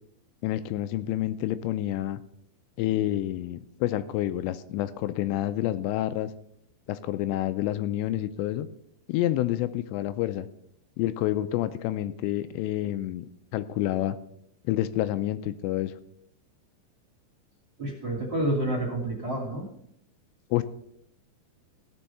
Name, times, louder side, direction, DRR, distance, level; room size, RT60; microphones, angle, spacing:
voice 1, 0.4-2.2 2.8-6.3 6.9-8.7 9.1-10.5 11.0-13.3 13.5-14.2 14.7-15.9 20.5-20.6, left 14 dB, 85° left, 12 dB, 2.7 m, -28 dB
voice 2, 17.8-19.6, right 1 dB, 30° right, -2 dB, 2.6 m, -29 dB
16.5 x 6.3 x 5.5 m, 0.72 s
omnidirectional pair, 5.2 m